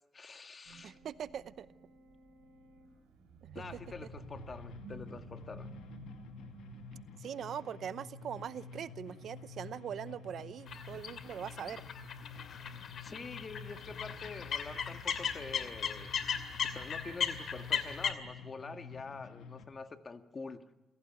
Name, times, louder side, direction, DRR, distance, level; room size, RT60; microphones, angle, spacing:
voice 1, 0.1-1.0 3.5-5.7 13.0-16.2 16.6-20.6, left 4 dB, 35° left, 7 dB, 1.8 m, -46 dB
sound 1, 0.6-7.1, right 5 dB, 90° right, 5.6 m, -53 dB
voice 2, 0.8-1.7 3.4-3.6 7.2-11.9, right 8 dB, 65° right, 15 dB, 0.8 m, -42 dB
sound 2, 3.6-19.6, left 5 dB, 85° left, 2.4 m, -50 dB
sound 3, 10.7-18.1, left 7 dB, 60° left, 2.5 m, -37 dB
28.0 x 16.5 x 9.3 m, 0.99 s
cardioid pair, 90°, 0 cm